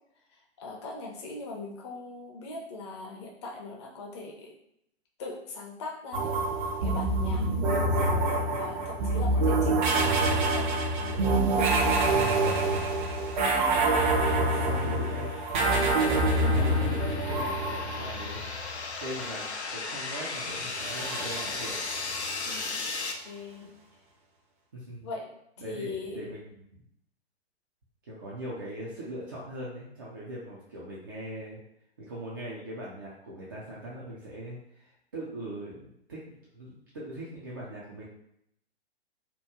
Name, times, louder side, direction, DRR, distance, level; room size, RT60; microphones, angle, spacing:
voice 1, 0.6-4.5 5.2-6.4 6.8-7.5 7.8-11.2 12.4-12.8 14.7-15.1 15.7-16.6 20.4-20.6 22.4-22.8 23.2-23.7 25.0-25.3 25.6-26.3, left 3 dB, 25° left, -1 dB, 0.6 m, -40 dB
sound 1, 6.1-18.7 20.7-22.4, right 2 dB, 45° right, 0.7 m, -26 dB
voice 2, 12.0-12.4 14.5-15.3 15.6-21.8 23.6-23.7 24.7-25.1 25.6-26.7 28.1-31.6 32.0-38.0, right 1 dB, 20° right, -7 dB, 0.3 m, -41 dB
sound 2, 14.2-23.1, left 3 dB, 80° left, 0.6 m, -37 dB
2.9 x 2.2 x 3.5 m, 0.75 s
figure-of-eight pair, 120°, 33 cm